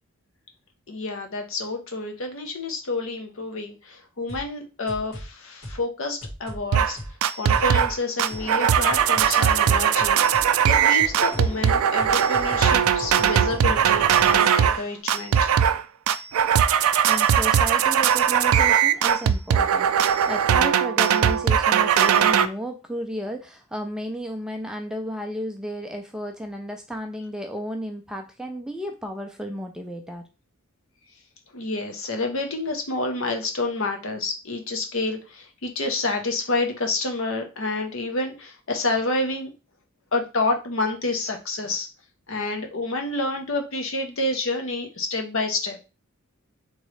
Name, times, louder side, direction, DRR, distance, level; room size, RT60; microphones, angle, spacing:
voice 1, 0.9-7.0 7.3-10.2 10.7-15.5 31.5-39.5 40.1-41.9 42.3-45.8, left 2 dB, 65° left, 0.8 m, -28 dB
sound 1, 4.3-4.5 4.9-5.3 5.6-5.8 6.2-6.6 7.0-7.1 7.5-7.9 8.3-8.4 8.9-9.3 9.6-14.9, equal, 45° left, 2.1 m, -37 dB
sound 2, 6.7-6.9 7.2-14.8 15.1-15.8 16.1-22.5, right 8 dB, 80° right, 0.3 m, -19 dB
sound 3, 8.3-14.8, left 1 dB, 20° left, 1.1 m, -41 dB
voice 2, 17.1-30.2, equal, 5° right, 0.3 m, -33 dB
3.6 x 3.1 x 3.2 m
head